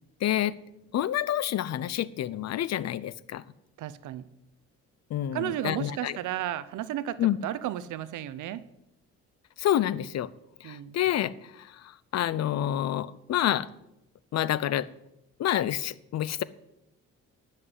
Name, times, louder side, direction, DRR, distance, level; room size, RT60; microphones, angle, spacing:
voice 1, 0.2-0.6 0.9-3.4 5.1-6.2 7.2-7.4 9.6-10.3 10.6-13.7 14.3-14.9 15.4-16.4, left 12 dB, 60° left, 19 dB, 0.6 m, -28 dB
voice 2, 3.8-4.3 5.3-8.6 10.6-10.9, right 12 dB, 80° right, 16 dB, 0.7 m, -33 dB
11.0 x 5.9 x 7.7 m, 0.85 s
cardioid pair, 90°, 30 cm